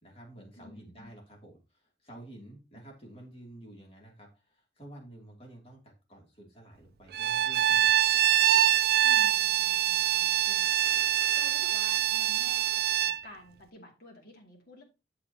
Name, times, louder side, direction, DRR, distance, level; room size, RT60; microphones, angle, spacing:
voice 1, 0.0-8.1, right 1 dB, 35° left, 0 dB, 2.6 m, -50 dB
voice 2, 0.6-1.1 2.7-2.8 9.0-14.8, left 2 dB, 60° left, 0 dB, 2.5 m, -52 dB
Bowed string instrument, 7.1-13.2, right 11 dB, 60° right, 0.3 m, -25 dB
8.3 x 7.3 x 2.9 m, 0.28 s
head